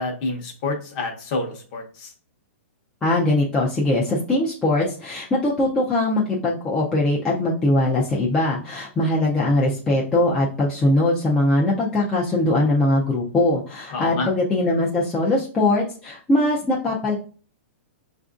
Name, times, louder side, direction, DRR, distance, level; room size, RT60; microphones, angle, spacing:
voice 1, 0.0-2.1 13.9-14.3, left 3 dB, 30° left, 2 dB, 0.8 m, -28 dB
voice 2, 3.0-17.2, left 2 dB, 10° left, -5 dB, 0.4 m, -21 dB
5.8 x 2.5 x 2.3 m, 0.40 s
hypercardioid pair, 165°, 7 cm